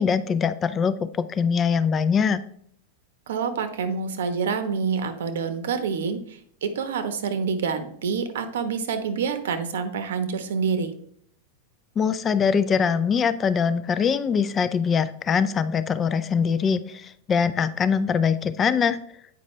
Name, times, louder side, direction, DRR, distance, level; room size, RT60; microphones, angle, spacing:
voice 1, 0.0-2.4 12.0-19.0, left 6 dB, 20° left, 13 dB, 0.4 m, -23 dB
voice 2, 3.3-10.9, right 5 dB, 85° right, 9 dB, 1.0 m, -27 dB
8.8 x 5.3 x 3.2 m, 0.66 s
supercardioid pair, 145°, 0 cm